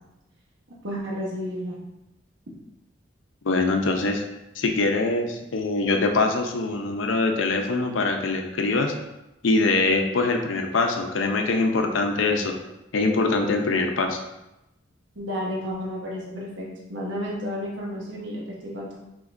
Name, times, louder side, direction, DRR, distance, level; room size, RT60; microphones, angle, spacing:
voice 1, 0.8-1.8 15.2-18.9, equal, 70° right, -4 dB, 1.0 m, -32 dB
voice 2, 3.4-4.2 4.6-8.9 9.4-12.5 12.9-14.2, left 3 dB, 75° left, 4 dB, 0.6 m, -23 dB
5.0 x 3.8 x 2.5 m, 0.91 s
head